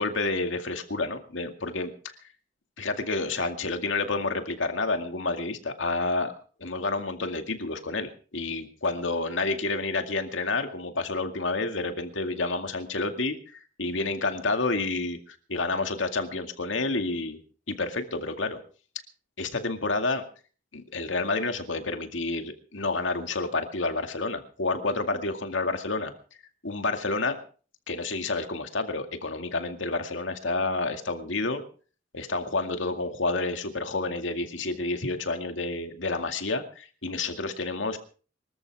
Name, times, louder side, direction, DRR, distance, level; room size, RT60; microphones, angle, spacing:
voice 1, 0.0-2.1 2.8-6.3 6.6-17.4 17.7-18.6 19.4-20.3 20.7-26.1 26.6-27.4 27.9-31.6 32.1-38.0, left 3 dB, 75° left, 6 dB, 2.2 m, -29 dB
24.5 x 14.0 x 3.6 m, 0.40 s
head